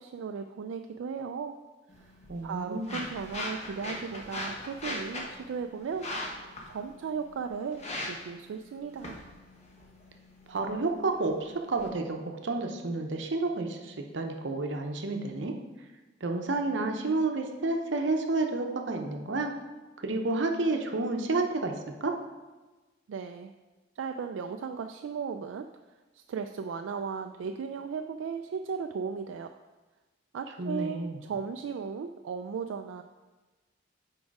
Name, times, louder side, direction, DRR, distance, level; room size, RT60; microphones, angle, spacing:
voice 1, 0.0-1.6 2.0-2.1 2.4-6.1 6.7-9.2 23.1-23.5 24.0-25.7 26.1-29.6 30.3-33.0, right 6 dB, 85° right, 6 dB, 0.3 m, -36 dB
sound 1, 1.9-11.9, left 1 dB, 35° left, 1.0 m, -41 dB
voice 2, 2.3-3.0 10.5-15.5 16.2-19.5 20.0-21.7 22.0-22.2 30.6-31.2, right 3 dB, 70° right, 4 dB, 0.7 m, -30 dB
6.3 x 4.8 x 4.7 m, 1.2 s
head